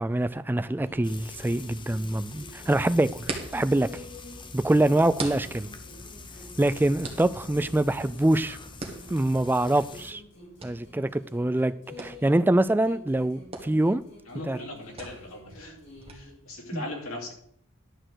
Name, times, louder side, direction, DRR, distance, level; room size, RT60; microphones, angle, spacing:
voice 1, 0.0-3.3 3.5-3.9 4.5-5.7 6.6-8.6 9.1-10.2 10.6-14.0 14.5-14.6 16.7-16.8, right 1 dB, 10° right, 13 dB, 0.3 m, -24 dB
sound 1, 0.6-16.1, right 3 dB, 30° right, 1.6 m, -44 dB
sound 2, 0.8-4.5 4.8-8.5 8.8-12.5 12.8-16.5, left 1 dB, 55° left, 3.1 m, -50 dB
Frying (food), 1.0-10.1, left 3 dB, 25° left, 0.8 m, -45 dB
voice 2, 14.2-15.8 16.1-17.3, left 2 dB, 80° left, 0 dB, 2.8 m, -39 dB
11.0 x 4.4 x 7.7 m, 0.62 s
head